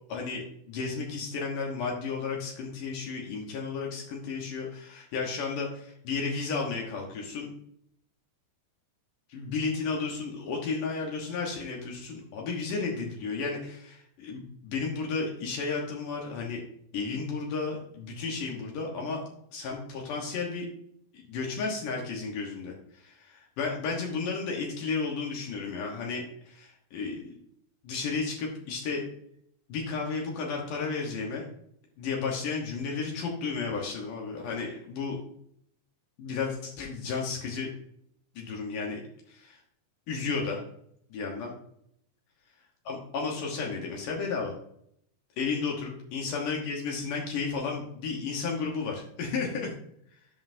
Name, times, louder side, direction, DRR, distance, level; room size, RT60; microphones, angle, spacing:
voice 1, 0.1-7.5 9.3-16.6 16.9-19.2 19.5-20.7 21.1-27.4 27.8-29.0 29.7-31.5 32.0-35.2 36.2-37.7 38.4-39.0 39.3-39.6 40.1-40.6 41.1-41.5 42.9-44.5 45.4-49.7, left 4 dB, 90° left, -1 dB, 1.8 m, -33 dB
13.5 x 5.5 x 2.7 m, 0.71 s
omnidirectional pair, 5.7 m